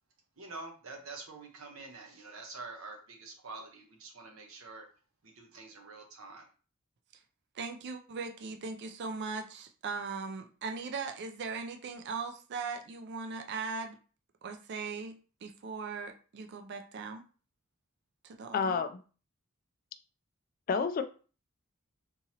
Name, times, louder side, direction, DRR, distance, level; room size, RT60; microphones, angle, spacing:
voice 1, 0.4-4.9 5.2-6.5, right 3 dB, 85° right, 0.9 m, -46 dB
voice 2, 7.5-14.0 14.4-15.1 15.4-17.2 18.2-18.8, right 4 dB, 55° right, 0.4 m, -39 dB
voice 3, 18.5-19.0 20.7-21.0, left 5 dB, 45° left, 0.3 m, -29 dB
3.7 x 2.9 x 2.8 m
head